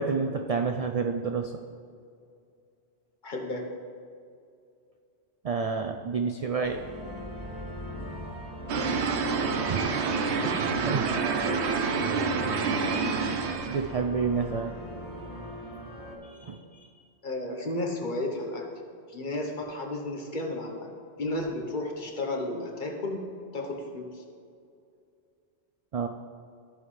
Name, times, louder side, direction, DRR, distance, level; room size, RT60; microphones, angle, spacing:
voice 1, 0.0-1.5 5.4-6.8 9.6-9.9 10.8-11.1 13.1-14.7 16.2-17.0 25.9-26.1, right 5 dB, 60° right, 4 dB, 0.4 m, -30 dB
voice 2, 3.2-3.8 9.4-10.0 10.3-10.8 17.2-18.7 19.1-20.9 21.2-24.2, left 2 dB, 50° left, 1 dB, 1.2 m, -33 dB
sound 1, 6.6-16.2, equal, 30° left, 2.4 m, -41 dB
sound 2, 8.7-13.9, right 5 dB, 85° right, 1.0 m, -27 dB
13.5 x 5.6 x 3.2 m, 2.4 s
omnidirectional pair, 1.1 m